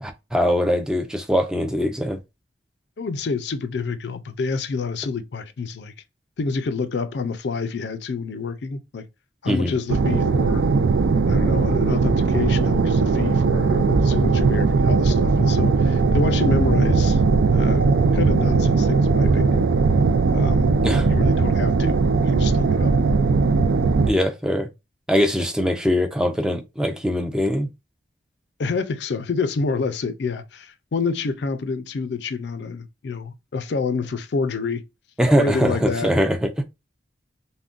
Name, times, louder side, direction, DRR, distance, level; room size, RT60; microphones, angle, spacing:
voice 1, 0.0-2.2 9.5-9.7 20.8-21.1 24.1-24.7 25.1-27.7 35.2-36.6, equal, 5° right, 0.3 m, -22 dB
voice 2, 3.0-5.9 6.4-9.1 9.4-10.6 11.3-17.2 17.5-19.7 20.3-20.7 21.0-22.9 28.6-34.8 35.4-36.1, left 4 dB, 65° left, 0.4 m, -28 dB
sound 1, 9.9-24.1, right 4 dB, 85° right, 0.4 m, -19 dB
3.6 x 2.1 x 2.4 m
head